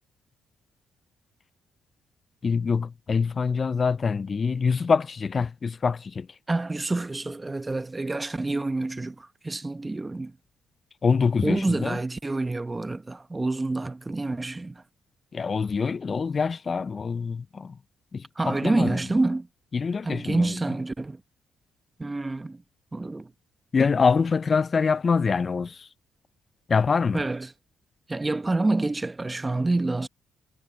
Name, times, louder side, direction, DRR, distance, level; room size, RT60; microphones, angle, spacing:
voice 1, 2.4-6.3 11.0-12.0 15.3-17.8 18.1-19.0 19.7-20.5 23.7-25.9 26.7-27.2, left 5 dB, 40° left, 0.3 m, -25 dB
voice 2, 6.5-10.4 11.4-14.8 18.4-19.5 20.0-21.2 22.0-22.6 22.9-23.3 27.1-27.5 28.1-30.1, right 2 dB, 20° right, 0.9 m, -27 dB
cardioid pair, 90°, 0 cm